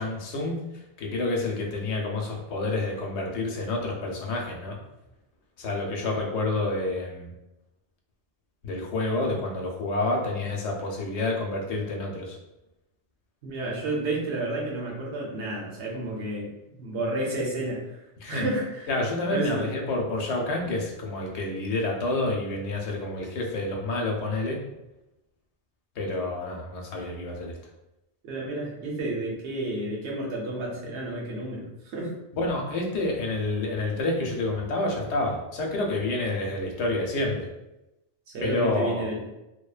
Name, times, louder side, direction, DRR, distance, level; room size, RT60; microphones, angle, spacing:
voice 1, 0.0-4.8 5.6-7.3 8.6-12.4 18.2-18.5 18.9-24.6 26.0-27.6 32.3-37.5 38.4-39.1, left 2 dB, 85° left, 0 dB, 0.9 m, -29 dB
voice 2, 13.4-18.9 19.3-19.7 28.2-32.1 38.3-39.2, right 2 dB, 85° right, -2 dB, 1.0 m, -31 dB
2.6 x 2.1 x 2.3 m, 0.94 s
omnidirectional pair, 1.1 m